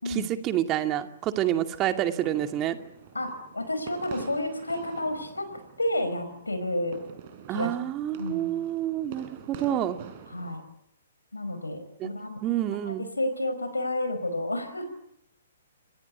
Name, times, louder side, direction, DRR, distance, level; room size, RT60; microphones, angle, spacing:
voice 1, 0.1-2.8 7.5-10.0 12.0-12.1 12.4-13.0, right 12 dB, 25° right, 7 dB, 2.4 m, -28 dB
sound 1, 1.8-10.6, right 7 dB, 40° right, 5.5 m, -47 dB
voice 2, 3.1-5.5 5.8-7.0 7.5-7.7 8.2-8.5 10.3-10.6 11.3-12.4 12.8-14.8, left 1 dB, 85° left, 8 dB, 5.3 m, -30 dB
28.0 x 25.0 x 8.5 m, 0.77 s
figure-of-eight pair, 120°, 0 cm